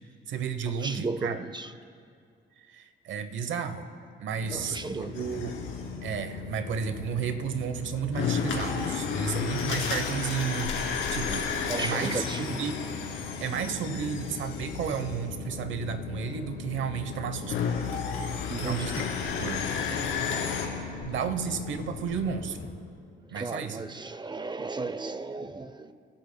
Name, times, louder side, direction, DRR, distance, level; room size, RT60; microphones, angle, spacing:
voice 1, 0.3-1.5 2.6-3.9 4.2-5.6 6.0-12.7 13.4-17.7 18.5-19.7 21.0-22.6 23.3-23.8, right 7 dB, 75° right, 0.9 m, -33 dB
voice 2, 0.8-1.7 4.5-5.1 11.7-12.6 18.5-18.9 23.4-25.9, right 3 dB, 20° right, 0.5 m, -35 dB
sound 1, 4.4-22.7, left 5 dB, 60° left, 2.7 m, -39 dB
sound 2, 5.1-6.0 8.1-15.2 17.0-20.7, left 6 dB, 90° left, 2.4 m, -32 dB
29.5 x 11.5 x 2.2 m
cardioid pair, 90°, 20 cm